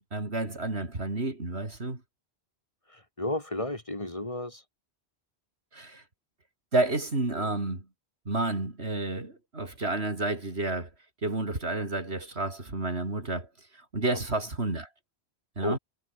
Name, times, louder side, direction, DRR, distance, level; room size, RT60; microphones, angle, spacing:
voice 1, 0.0-2.0 5.7-6.0 6.7-7.9 8.3-10.9 11.2-13.5 13.9-14.9 15.6-15.8, right 2 dB, 80° right, 4.4 m, -30 dB
voice 2, 2.9-4.6 15.6-15.8, left 1 dB, 30° left, 2.3 m, -32 dB
omnidirectional pair, 1.1 m